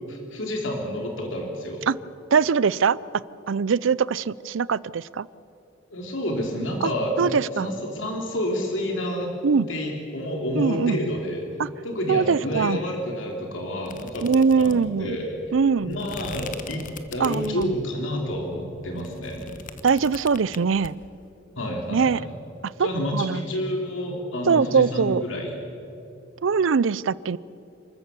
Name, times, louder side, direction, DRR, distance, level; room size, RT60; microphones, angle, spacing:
voice 1, 0.1-1.8 5.9-9.3 9.7-11.4 11.8-14.2 14.6-15.3 15.8-19.5 21.6-22.3 22.8-25.6, left 1 dB, 75° left, 1 dB, 2.9 m, -29 dB
voice 2, 2.3-3.0 3.5-5.3 6.8-6.9 7.2-7.7 9.4-9.7 10.5-11.0 11.6-11.7 12.1-12.8 14.2-15.2 15.5-15.9 17.2-17.7 19.8-20.9 21.9-22.2 22.8-23.4 24.5-25.2 26.4-27.4, right 5 dB, 75° right, 21 dB, 0.5 m, -22 dB
sound 1, 13.9-17.9 18.3-20.9, left 4 dB, 45° left, 1.1 m, -40 dB
28.0 x 13.5 x 8.2 m, 2.8 s
head